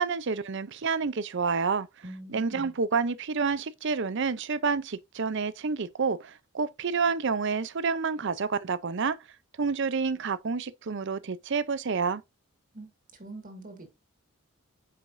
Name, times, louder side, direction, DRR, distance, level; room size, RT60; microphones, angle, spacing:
voice 1, 0.0-1.9 2.3-9.2 9.6-12.2, right 5 dB, 55° right, 0.5 m, -29 dB
voice 2, 2.0-2.7 12.7-13.9, right 2 dB, 40° right, 1.8 m, -44 dB
8.3 x 5.1 x 2.6 m
head